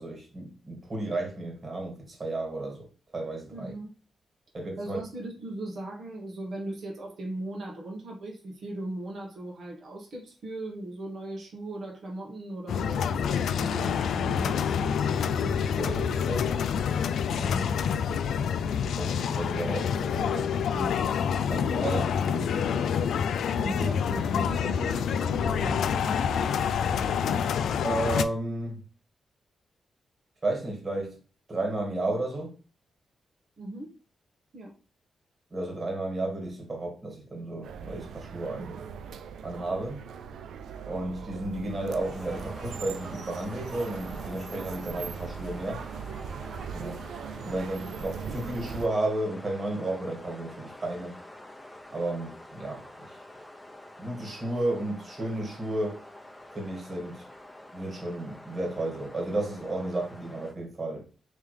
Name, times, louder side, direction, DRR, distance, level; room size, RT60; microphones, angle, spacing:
voice 1, 0.0-2.9 3.1-3.7 4.5-5.0 15.4-16.5 19.0-21.0 21.5-22.9 27.8-28.9 30.4-31.2 31.5-32.6 35.5-38.8 39.4-40.0 40.8-45.8 46.7-47.0 47.4-51.2 51.9-53.2 54.0-56.0 56.5-57.2 57.7-61.1, right 2 dB, 40° right, 2.1 m, -33 dB
voice 2, 3.5-3.9 4.8-14.7 17.4-17.8 23.6-26.3 33.6-33.9 34.5-34.7, right 1 dB, 65° right, 1.2 m, -38 dB
sound 1, 12.7-28.2, left 7 dB, 80° left, 0.3 m, -27 dB
sound 2, 37.6-48.9, right 7 dB, 80° right, 0.3 m, -40 dB
sound 3, 41.9-60.5, left 1 dB, 10° left, 0.8 m, -47 dB
3.5 x 3.2 x 3.2 m
cardioid pair, 65°, 0 cm